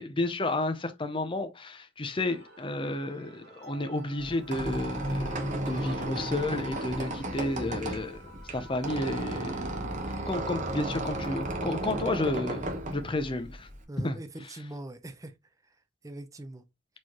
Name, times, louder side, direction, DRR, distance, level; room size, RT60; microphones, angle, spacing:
voice 1, 0.0-9.6 10.1-12.7 12.9-13.7 14.0-14.5, left 2 dB, 25° left, 0.6 m, -32 dB
sound 1, 2.2-9.6, left 1 dB, 55° right, 1.4 m, -51 dB
Squeak, 4.2-13.8, right 1 dB, 40° right, 0.9 m, -34 dB
voice 2, 13.9-15.3 16.0-16.6, right 1 dB, 15° right, 0.5 m, -42 dB
4.4 x 3.1 x 2.9 m
head